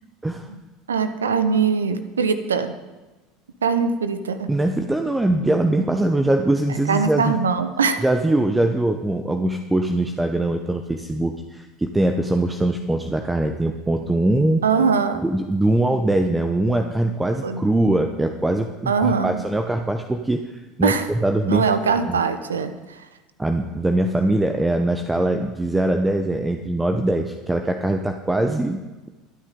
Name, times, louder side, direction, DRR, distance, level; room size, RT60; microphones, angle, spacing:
voice 1, 0.9-2.8 3.6-4.5 6.9-8.0 14.6-15.2 17.4-17.6 18.9-19.4 20.8-21.1 21.5-23.1, right 5 dB, 75° right, 11 dB, 0.9 m, -22 dB
voice 2, 4.5-7.4 8.0-14.6 15.2-21.7 22.1-22.2 23.4-29.1, right 1 dB, 10° right, 6 dB, 0.9 m, -22 dB
22.5 x 9.3 x 3.8 m, 1.2 s
figure-of-eight pair, 70°, 0 cm